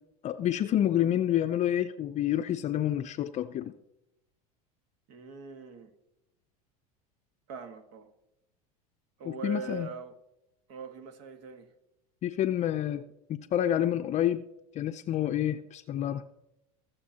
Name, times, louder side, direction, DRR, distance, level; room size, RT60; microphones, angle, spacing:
voice 1, 0.2-3.7 9.3-9.9 12.2-13.0 13.5-14.4 14.7-16.3, left 11 dB, 40° left, 0.5 m, -28 dB
voice 2, 5.1-5.9 7.5-8.1 9.2-10.1 10.7-11.7, right 5 dB, 65° right, 1.6 m, -41 dB
19.5 x 6.7 x 2.9 m
hypercardioid pair, 90°, 19 cm